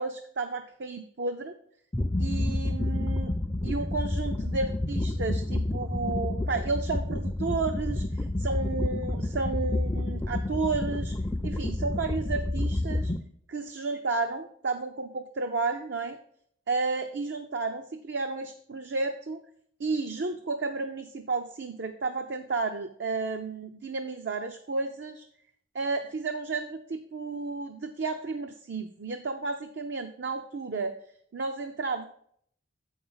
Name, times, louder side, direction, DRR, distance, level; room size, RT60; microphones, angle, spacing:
voice 1, 0.0-1.5 2.2-3.3 3.6-11.1 11.4-13.1 13.5-16.2 16.7-19.4 19.8-25.3 25.7-30.9 31.3-32.1, right 3 dB, 60° right, 6 dB, 0.5 m, -32 dB
sound 1, 1.9-13.2, left 1 dB, 15° left, 0.4 m, -29 dB
7.7 x 5.4 x 5.5 m, 0.64 s
head